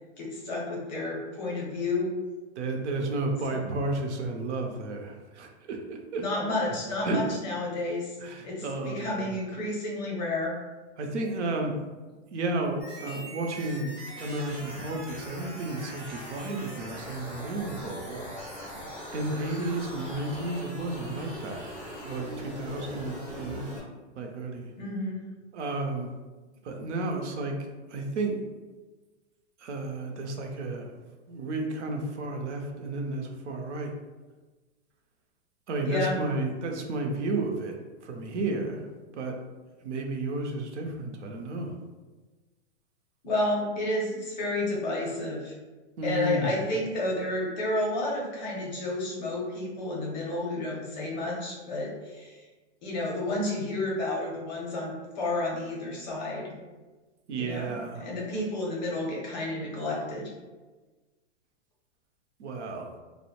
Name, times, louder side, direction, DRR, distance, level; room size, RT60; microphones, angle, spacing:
voice 1, 0.2-2.1 3.5-3.7 6.2-8.1 8.4-10.5 24.8-25.2 35.8-36.2 43.2-45.5 46.0-52.4 52.8-56.5 57.3-60.3, left 2 dB, 40° left, -3 dB, 0.6 m, -31 dB
voice 2, 2.6-6.2 7.0-7.4 8.2-9.4 11.0-11.8 12.3-18.4 19.1-23.7 24.2-24.7 25.5-26.1 26.6-27.6 27.9-28.5 29.6-30.9 31.3-33.9 35.7-37.8 38.0-38.9 39.1-39.4 39.8-41.8 46.0-46.6 57.3-58.1 62.4-62.9, right 2 dB, 70° right, 2 dB, 0.6 m, -32 dB
sound 1, 12.8-23.8, equal, 10° right, 0.5 m, -41 dB
2.5 x 2.0 x 2.9 m, 1.3 s
hypercardioid pair, 170°, 36 cm